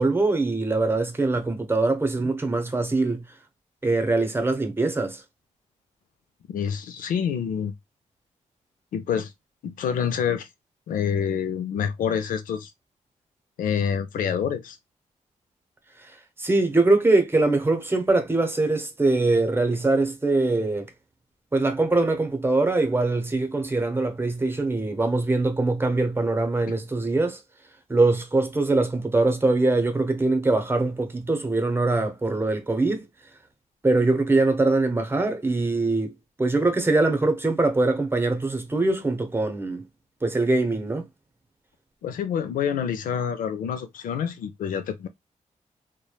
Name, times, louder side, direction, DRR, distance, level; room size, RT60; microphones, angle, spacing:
voice 1, 0.0-3.3 3.8-5.2 16.0-16.1 16.4-20.9 21.5-27.4 27.9-33.1 33.8-36.1 36.4-39.8 40.2-41.0, right 2 dB, 15° right, 0.8 m, -23 dB
voice 2, 6.5-7.7 8.9-9.3 9.6-10.5 10.9-12.7 13.6-14.8 42.0-45.1, left 8 dB, 85° left, 0.5 m, -27 dB
3.1 x 2.2 x 2.3 m
cardioid pair, 70°, 14 cm